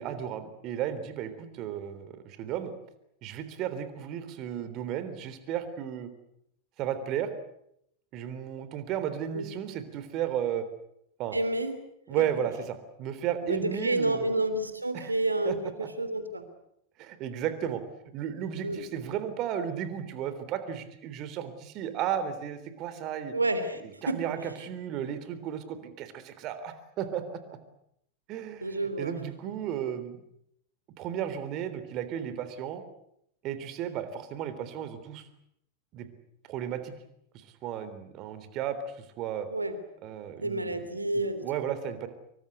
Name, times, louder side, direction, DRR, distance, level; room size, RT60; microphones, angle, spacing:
voice 1, 0.0-2.7 3.2-6.1 6.8-7.3 8.1-10.7 11.2-11.4 12.1-14.3 14.9-15.1 15.5-15.9 17.0-17.8 18.1-23.3 23.8-27.6 28.3-30.2 31.0-32.8 33.4-35.3 35.9-36.1 36.5-36.9 37.3-39.5 40.0-40.9 41.4-42.1, right 9 dB, 40° right, 11 dB, 3.6 m, -34 dB
voice 2, 11.3-11.8 13.4-16.4 18.6-18.8 23.3-23.8 24.1-24.2 28.6-29.1 39.5-39.8 40.4-41.5, right 2 dB, 80° right, 11 dB, 3.3 m, -29 dB
25.5 x 24.0 x 8.2 m, 0.76 s
figure-of-eight pair, 90°, 0 cm